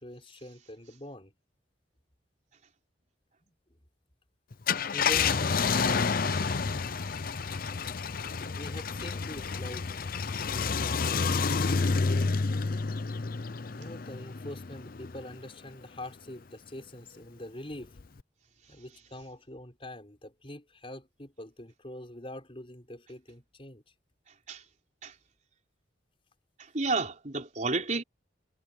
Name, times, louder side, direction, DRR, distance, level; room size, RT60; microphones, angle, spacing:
voice 1, 0.0-1.3 3.4-3.5 4.9-5.6 8.5-10.0 13.8-18.0 18.7-23.8, left 1 dB, 30° left, 5.4 m, -44 dB
Car, 4.5-15.3 15.8-15.9 18.0-18.2, left 5 dB, 50° left, 0.6 m, -29 dB
voice 2, 26.6-28.0, right 3 dB, 40° right, 4.3 m, -31 dB
head